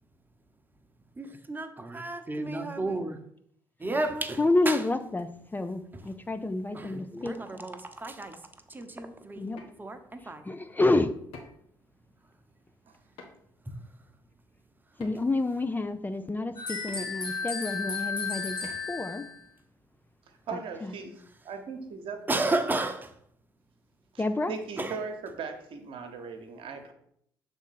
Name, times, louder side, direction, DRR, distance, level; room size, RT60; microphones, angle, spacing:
voice 1, 1.2-3.2 3.8-4.8 6.7-6.9 7.2-8.4 8.7-9.5 9.8-10.4 22.3-23.1 24.8-25.0, right 2 dB, 20° right, 1.0 m, -32 dB
voice 2, 4.4-7.6 9.4-9.6 10.5-11.1 15.0-18.6 18.9-19.3 20.5-20.9 24.2-24.5, left 2 dB, 20° left, 0.5 m, -29 dB
sound 1, 9.6-9.7 11.3-11.7 13.2-13.5 15.0-15.4 16.9-17.0 18.6-18.9, left 3 dB, 70° left, 1.3 m, -47 dB
sound 2, 16.6-19.4, left 5 dB, 50° left, 2.4 m, -34 dB
voice 3, 20.5-21.1 21.4-22.6 24.1-26.9, right 5 dB, 60° right, 1.0 m, -38 dB
6.3 x 3.7 x 5.7 m
hypercardioid pair, 50°, 10 cm